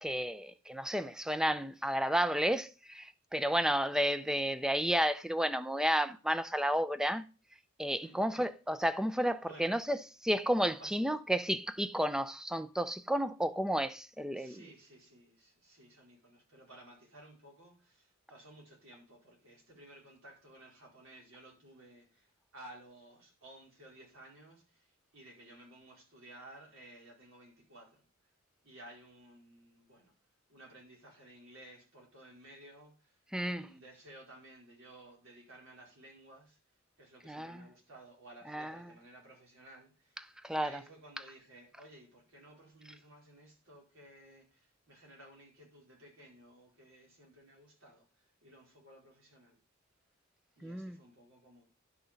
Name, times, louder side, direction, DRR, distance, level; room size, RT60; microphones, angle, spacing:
voice 1, 0.0-7.3 7.8-10.0 10.2-14.6 33.3-33.7 37.3-37.6 38.5-38.7 40.4-40.7 50.6-51.0, equal, 5° right, 0.4 m, -32 dB
voice 2, 9.4-9.8 10.8-11.0 14.3-28.1 28.6-30.1 30.5-36.6 37.0-49.6 50.6-51.6, right 1 dB, 80° right, 4.7 m, -56 dB
11.0 x 5.9 x 5.2 m
head